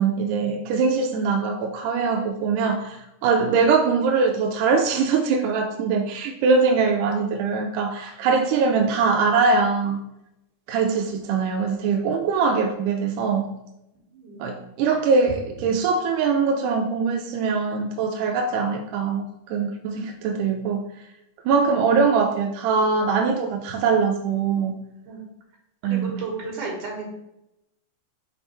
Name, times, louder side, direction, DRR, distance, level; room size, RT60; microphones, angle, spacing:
voice 1, 0.0-10.0 10.7-13.6 14.4-20.9 21.5-24.9 25.8-26.3, right 5 dB, 80° right, 1.9 m, -22 dB
voice 2, 14.1-15.0 25.0-25.2 25.8-27.1, right 4 dB, 65° right, 2.9 m, -34 dB
5.9 x 3.6 x 4.4 m
omnidirectional pair, 4.0 m